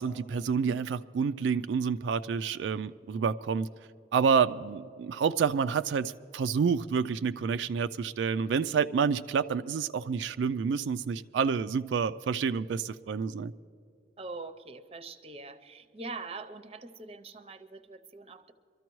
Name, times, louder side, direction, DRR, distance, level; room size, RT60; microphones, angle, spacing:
voice 1, 0.0-3.7 4.1-13.5, right 6 dB, 90° right, 0.3 m, -28 dB
voice 2, 14.2-18.5, right 3 dB, 35° right, 0.6 m, -43 dB
24.0 x 13.5 x 3.1 m
head